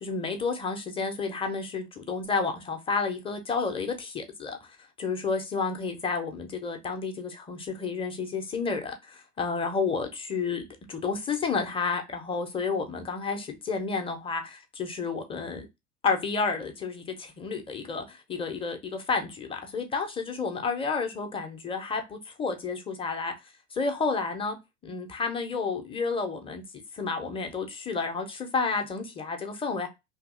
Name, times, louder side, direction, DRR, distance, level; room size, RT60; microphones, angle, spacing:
voice 1, 0.0-4.7 5.0-15.7 16.0-23.3 23.7-24.6 24.8-26.6 26.9-29.9, left 4 dB, 15° left, 0.6 m, -31 dB
2.8 x 2.6 x 2.4 m
figure-of-eight pair, 75°, 39 cm